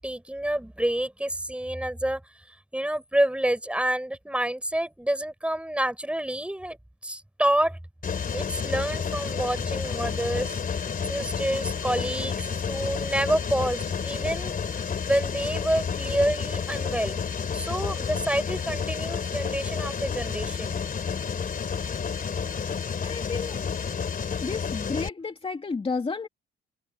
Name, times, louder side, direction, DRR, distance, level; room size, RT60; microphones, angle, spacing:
voice 1, 0.0-2.2 2.7-6.8 7.0-7.8 8.3-10.6 11.0-14.5 15.1-17.2 17.5-20.8, right 1 dB, 5° right, 7.4 m, -28 dB
Mechanisms, 8.0-25.1, left 6 dB, 45° left, 3.6 m, -30 dB
voice 2, 23.0-23.6 24.4-26.3, left 4 dB, 30° left, 2.6 m, -31 dB
cardioid pair, 90°, 20 cm